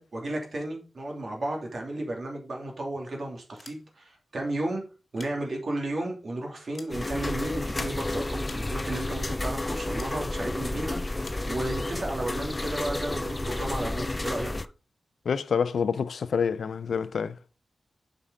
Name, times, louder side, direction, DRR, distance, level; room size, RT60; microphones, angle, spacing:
voice 1, 0.0-4.8 5.1-14.5, right 1 dB, 50° right, 2.8 m, -33 dB
sound 1, 3.5-4.2 4.9-5.9 6.4-7.7 8.4-9.1 10.0-10.2 11.2-11.5, left 4 dB, 45° left, 1.4 m, -50 dB
sound 2, 6.9-14.7, left 2 dB, 20° left, 0.4 m, -31 dB
voice 2, 15.3-17.4, left 6 dB, 80° left, 0.5 m, -27 dB
7.4 x 5.4 x 5.1 m
wide cardioid pair, 130°, 0 cm